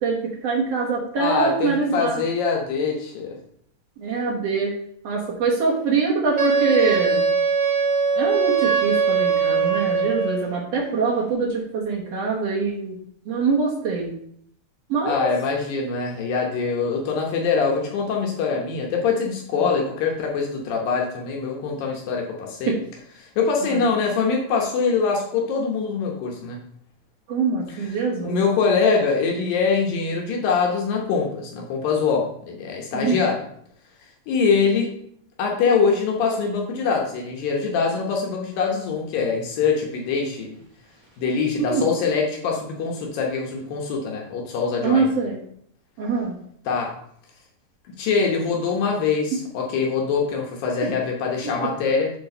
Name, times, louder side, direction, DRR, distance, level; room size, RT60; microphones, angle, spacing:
voice 1, 0.0-2.2 4.0-4.8 5.0-7.2 8.2-13.0 13.3-14.1 14.9-15.3 19.5-19.7 22.7-22.8 23.6-23.8 27.3-28.4 32.9-33.3 41.6-41.9 44.8-45.4 46.0-46.3, right 4 dB, 60° right, -2 dB, 1.9 m, -24 dB
voice 2, 1.2-3.4 15.1-22.7 23.2-26.6 27.7-27.9 28.2-33.4 34.3-34.9 35.4-40.6 41.2-45.1 46.7-46.9 48.0-52.1, left 5 dB, 80° left, 0 dB, 2.8 m, -23 dB
Wind instrument woodwind instrument, 6.4-10.5, right 5 dB, 30° right, 0.8 m, -21 dB
7.2 x 4.5 x 5.4 m, 0.66 s
omnidirectional pair, 4.0 m